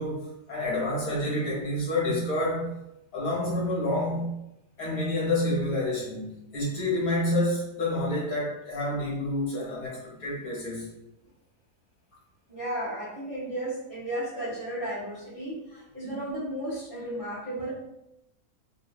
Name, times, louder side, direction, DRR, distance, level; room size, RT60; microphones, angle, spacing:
voice 1, 0.0-2.7 3.1-4.4 4.8-10.9, left 1 dB, 70° left, -6 dB, 1.6 m, -28 dB
voice 2, 12.5-17.7, right 1 dB, 30° right, -8 dB, 0.6 m, -34 dB
3.9 x 2.2 x 2.2 m, 0.87 s
omnidirectional pair, 1.6 m